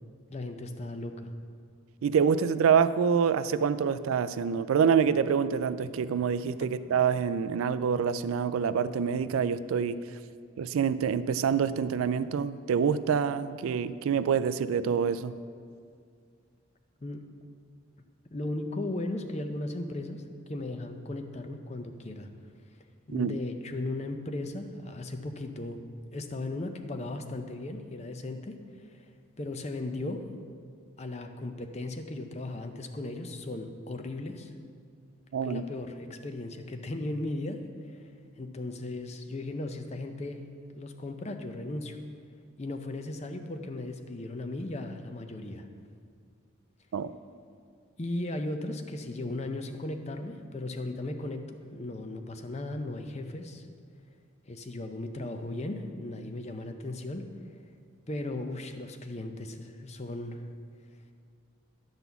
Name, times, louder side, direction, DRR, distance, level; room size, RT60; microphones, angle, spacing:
voice 1, 0.3-1.3 17.0-17.2 18.3-22.3 23.1-25.8 26.1-29.1 29.4-30.3 31.0-34.5 35.4-37.6 37.9-38.0 38.4-40.4 40.7-42.0 42.6-45.7 48.0-53.7 54.5-57.3 58.1-60.5, left 2 dB, 30° left, 6 dB, 0.5 m, -36 dB
voice 2, 2.0-10.0 10.6-15.3 23.1-23.4 35.3-35.6 46.9-47.1, right 7 dB, 85° right, 14 dB, 0.3 m, -26 dB
10.5 x 4.0 x 6.9 m, 2.2 s
head